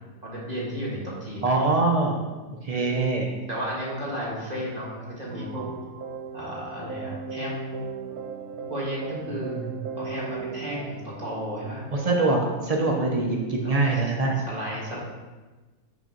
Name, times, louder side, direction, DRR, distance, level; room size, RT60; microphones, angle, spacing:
voice 1, 0.2-1.5 2.7-5.7 6.3-7.8 8.7-9.6 10.0-11.8 13.6-14.1 14.5-15.0, equal, 30° right, -5 dB, 1.5 m, -34 dB
voice 2, 1.4-2.3 2.6-3.3 9.4-9.7 12.0-14.3, right 3 dB, 60° right, 0 dB, 0.4 m, -24 dB
sound 1, 5.3-14.4, right 5 dB, 80° right, 1.2 m, -38 dB
6.3 x 3.0 x 5.1 m, 1.2 s
omnidirectional pair, 1.6 m